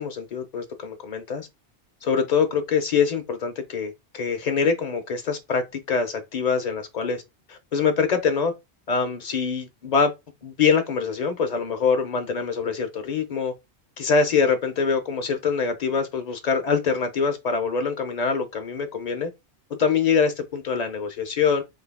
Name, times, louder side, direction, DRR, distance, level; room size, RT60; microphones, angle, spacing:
voice 1, 0.0-1.5 2.0-7.2 7.5-8.5 8.9-10.1 10.4-13.5 14.0-19.3 19.8-21.6, left 5 dB, 45° left, 0.7 m, -24 dB
3.7 x 3.3 x 2.2 m
omnidirectional pair, 1.1 m